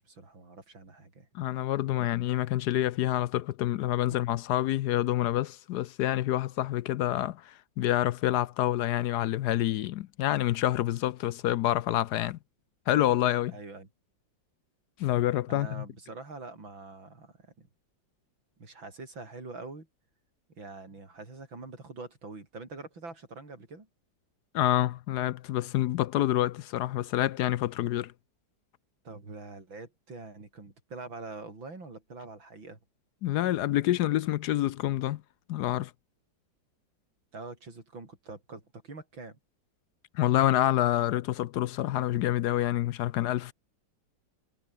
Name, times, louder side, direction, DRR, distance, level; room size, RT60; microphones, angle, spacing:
voice 1, 0.0-1.3 2.0-2.1 4.1-4.2 13.5-13.9 15.5-17.7 18.6-19.9 20.5-23.9 29.0-32.8 37.3-39.4, right 3 dB, 90° right, 6.3 m, -44 dB
voice 2, 1.3-12.4 12.9-13.5 15.0-15.8 24.5-28.1 33.2-35.2 35.5-35.9 40.1-43.5, left 14 dB, 70° left, 1.0 m, -27 dB
omnidirectional pair, 2.1 m